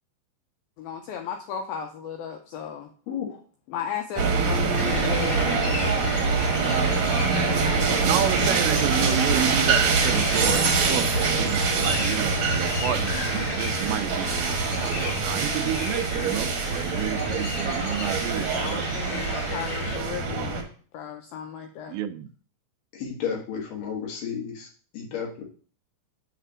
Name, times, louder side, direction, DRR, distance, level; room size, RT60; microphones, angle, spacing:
voice 1, 0.8-2.9 3.7-5.8 18.5-20.6 20.9-21.9, left 8 dB, 85° left, 4 dB, 2.1 m, -35 dB
voice 2, 3.1-3.4 22.9-25.4, left 7 dB, 65° left, 0 dB, 2.6 m, -33 dB
sound 1, 4.2-20.6, right 4 dB, 60° right, 1.9 m, -24 dB
sound 2, 4.8-20.0, left 2 dB, 40° left, 2.8 m, -35 dB
voice 3, 7.3-7.8 8.0-19.3 21.9-22.3, right 11 dB, 85° right, 12 dB, 2.8 m, -31 dB
8.7 x 3.4 x 6.0 m, 0.42 s
omnidirectional pair, 4.9 m